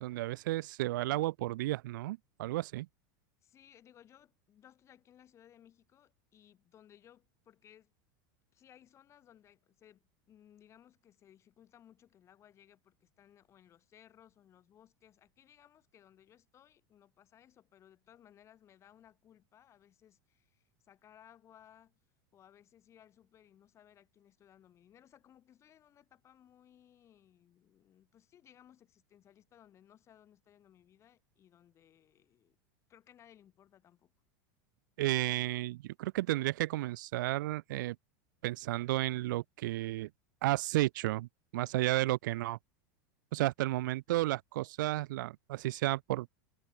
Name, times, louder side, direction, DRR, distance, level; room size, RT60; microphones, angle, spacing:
voice 1, 0.0-2.9 35.0-38.0 38.4-40.1 40.4-42.6 43.3-46.3, right 17 dB, 80° right, 0.7 m, -32 dB
voice 2, 3.4-7.9 8.5-22.0 22.3-32.6 32.9-34.1, left 10 dB, 30° left, 5.0 m, -62 dB
supercardioid pair, 150°, 10 cm